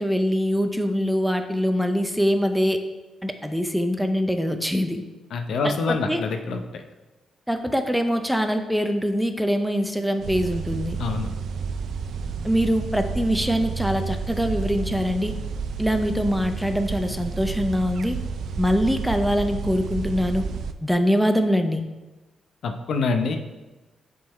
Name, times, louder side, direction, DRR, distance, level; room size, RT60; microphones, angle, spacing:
voice 1, 0.0-2.8 3.2-5.0 5.6-6.2 7.5-11.0 12.4-15.3 15.8-18.2 18.6-20.4 20.8-21.8, equal, ahead, 7 dB, 0.5 m, -23 dB
voice 2, 5.3-6.8 11.0-11.3 22.6-23.4, left 4 dB, 70° left, 6 dB, 0.6 m, -26 dB
sound 1, 10.2-20.7, right 5 dB, 70° right, 0.4 m, -31 dB
7.4 x 3.9 x 4.2 m, 1.1 s
cardioid pair, 100°, 0 cm